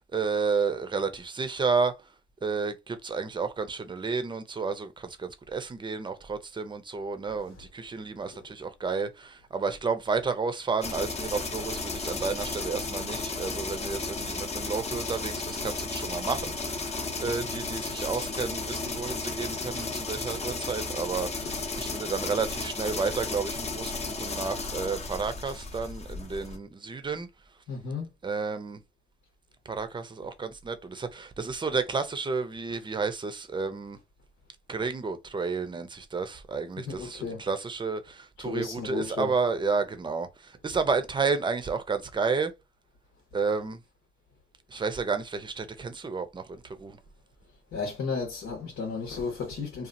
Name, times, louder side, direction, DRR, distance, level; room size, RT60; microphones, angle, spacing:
voice 1, 0.0-1.9 2.4-27.3 28.2-28.8 29.7-34.0 34.7-42.5 43.3-43.8 44.7-47.0, right 4 dB, 25° right, 0.6 m, -31 dB
sound 1, 10.8-26.6, left 3 dB, 35° left, 0.8 m, -34 dB
voice 2, 27.7-28.1 36.8-37.4 38.4-39.3 47.7-49.9, left 4 dB, 80° left, 1.1 m, -33 dB
2.8 x 2.4 x 2.5 m
cardioid pair, 90°, 20 cm